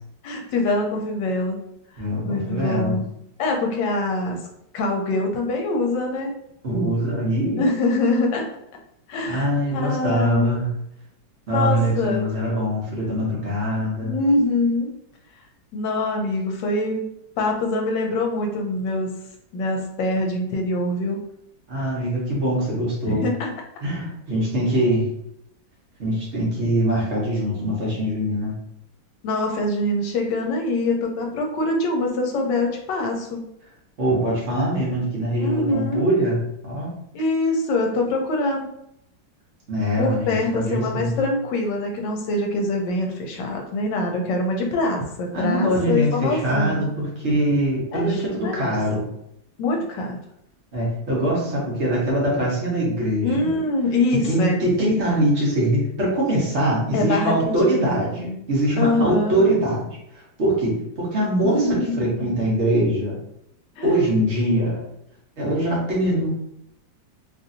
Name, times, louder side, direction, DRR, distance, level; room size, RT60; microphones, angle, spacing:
voice 1, 0.2-1.6 2.2-3.0 3.4-4.4 4.7-6.3 7.6-8.5 9.1-10.6 11.5-12.2 14.0-14.9 15.7-17.0 17.4-19.1 19.5-21.2 23.0-23.5 29.2-33.4 35.4-36.1 37.1-38.7 40.0-46.8 47.9-48.7 49.6-50.2 53.2-54.6 56.9-57.6 57.8-58.4 58.8-59.4 61.4-62.2 63.8-63.9, left 2 dB, 75° left, 2 dB, 1.3 m, -24 dB
voice 2, 2.0-3.0 6.6-7.6 9.3-10.7 11.5-14.1 21.7-23.3 23.8-25.1 26.0-28.5 34.0-36.4 36.6-36.9 39.7-41.1 45.3-49.1 50.7-53.5 54.2-59.9 60.4-63.2 63.8-64.8 65.4-66.3, right 1 dB, 45° right, -5 dB, 1.1 m, -23 dB
3.2 x 2.6 x 2.6 m, 0.78 s
omnidirectional pair, 2.1 m